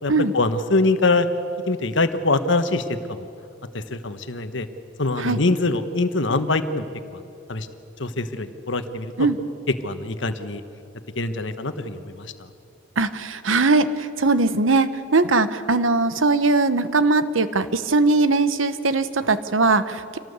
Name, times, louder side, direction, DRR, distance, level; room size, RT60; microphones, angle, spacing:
voice 1, 0.0-1.3 1.7-3.3 3.7-4.7 5.0-6.9 7.1-7.2 7.5-7.7 8.0-9.3 9.8-10.6 11.2-12.3, left 3 dB, 65° left, 9 dB, 1.3 m, -23 dB
voice 2, 13.0-20.2, right 3 dB, 80° right, 12 dB, 1.0 m, -20 dB
26.0 x 18.0 x 8.2 m, 2.8 s
head